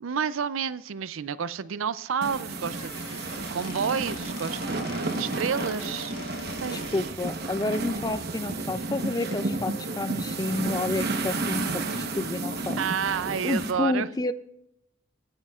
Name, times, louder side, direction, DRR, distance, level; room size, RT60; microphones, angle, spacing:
voice 1, 0.0-6.9 12.8-14.1, right 6 dB, 75° right, 17 dB, 0.5 m, -30 dB
sound 1, 2.2-13.7, right 2 dB, 50° right, 1.0 m, -32 dB
Squeak / Wood, 2.5-7.1, left 5 dB, 90° left, 1.3 m, -45 dB
sound 2, 4.6-12.0, right 1 dB, 55° left, 1.8 m, -47 dB
voice 2, 6.7-11.7 11.9-12.8 13.4-14.3, left 2 dB, 20° left, 13 dB, 0.4 m, -30 dB
22.0 x 9.7 x 2.4 m, 0.81 s
head